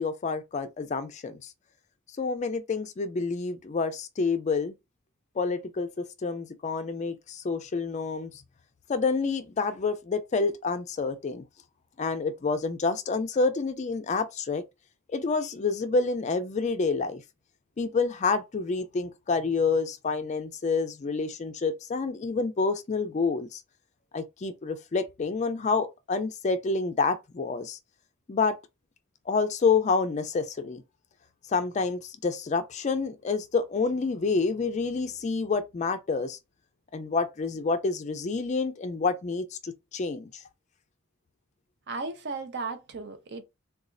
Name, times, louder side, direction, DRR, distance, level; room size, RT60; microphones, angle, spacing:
voice 1, 0.0-1.5 2.2-4.7 5.4-8.3 8.9-11.4 12.0-14.6 15.1-17.2 17.8-23.6 24.1-27.8 28.3-28.6 29.3-30.8 31.5-36.4 36.9-40.4, left 4 dB, 35° left, 0.4 m, -28 dB
voice 2, 41.9-43.4, right 3 dB, 50° right, 0.6 m, -35 dB
4.0 x 2.3 x 2.5 m
head